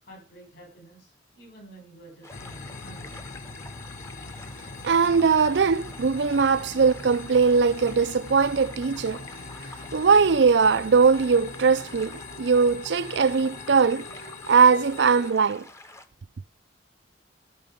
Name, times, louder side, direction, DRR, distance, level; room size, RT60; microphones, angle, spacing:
voice 1, 0.0-3.1, right 2 dB, 65° left, 6.8 m, -49 dB
sound 1, 2.2-16.1, left 2 dB, 15° left, 0.8 m, -47 dB
sound 2, 2.3-15.3, left 3 dB, 45° left, 0.8 m, -41 dB
voice 2, 4.8-9.2 9.9-14.1 14.5-15.7, right 5 dB, 70° right, 0.5 m, -20 dB
17.0 x 5.8 x 5.2 m
head